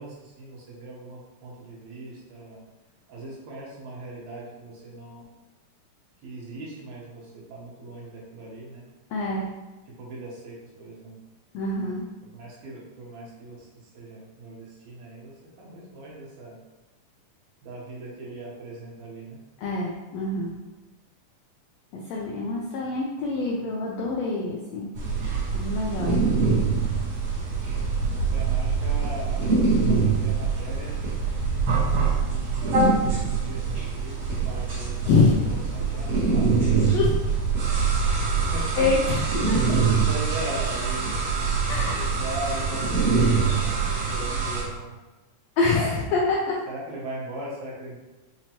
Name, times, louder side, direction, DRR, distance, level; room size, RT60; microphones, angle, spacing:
voice 1, 0.0-2.6 3.1-5.2 6.2-8.8 9.9-11.2 12.3-16.6 17.6-19.4 28.1-29.4 29.9-31.0 31.7-35.0 35.3-36.5 38.5-38.8 40.1-41.2 42.1-45.0 46.7-48.0, right 1 dB, 70° right, -5 dB, 2.3 m, -39 dB
voice 2, 9.1-9.5 11.5-12.0 19.6-20.6 21.9-24.9 25.5-26.2 35.1-35.3 35.6-35.7 36.9-37.1 38.8-39.8 41.6-42.1 45.6-46.6, left 3 dB, 80° left, -3 dB, 1.5 m, -25 dB
sound 1, 25.0-44.6, right 4 dB, 50° right, 1.9 m, -24 dB
5.9 x 2.9 x 2.9 m, 1.1 s
omnidirectional pair, 3.6 m